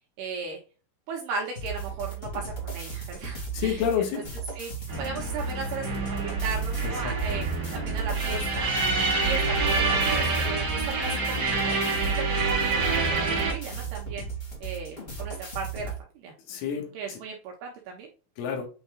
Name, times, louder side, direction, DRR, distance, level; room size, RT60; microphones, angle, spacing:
voice 1, 0.2-0.6 1.1-3.8 4.5-7.5 7.7-8.7 9.2-11.8 12.2-14.3 14.6-16.3 16.9-18.1, right 5 dB, 75° right, 2.5 m, -36 dB
sound 1, 1.5-16.0, right 4 dB, 50° left, 0.6 m, -36 dB
voice 2, 3.5-4.2 6.8-7.5 16.5-17.2 18.4-18.7, left 8 dB, 80° left, 3.9 m, -30 dB
sound 2, 4.9-13.5, right 3 dB, 45° right, 3.9 m, -27 dB
9.2 x 4.2 x 2.4 m
omnidirectional pair, 5.8 m